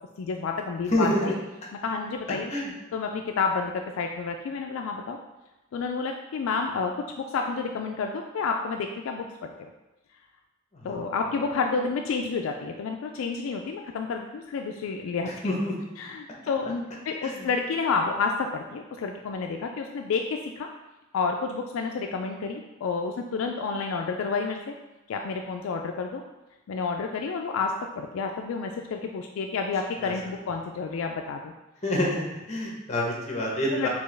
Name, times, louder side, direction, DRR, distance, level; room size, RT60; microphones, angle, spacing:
voice 1, 0.2-1.3 1.8-2.5 2.9-5.2 5.7-6.9 7.2-9.7 10.8-15.6 16.0-20.7 21.1-24.7 25.1-26.2 26.7-31.5 33.7-33.9, left 4 dB, 70° left, 3 dB, 0.3 m, -30 dB
voice 2, 0.9-1.3 2.5-2.7 10.7-11.0 15.2-15.7 17.2-17.5 30.0-30.1 31.8-33.9, left 1 dB, 30° left, -2 dB, 0.8 m, -27 dB
4.4 x 2.9 x 3.2 m, 1.0 s
head